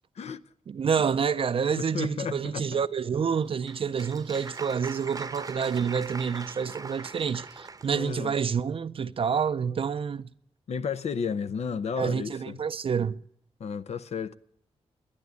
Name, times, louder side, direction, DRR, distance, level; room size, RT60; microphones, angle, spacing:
voice 1, 0.7-10.3 12.0-13.2, right 6 dB, 55° right, 0.5 m, -28 dB
voice 2, 1.7-2.7 7.9-8.3 10.7-12.6 13.6-14.3, left 6 dB, 75° left, 0.7 m, -32 dB
Applause, 3.3-8.1, right 4 dB, 35° right, 0.8 m, -41 dB
11.5 x 10.5 x 9.5 m
cardioid pair, 75°, 11 cm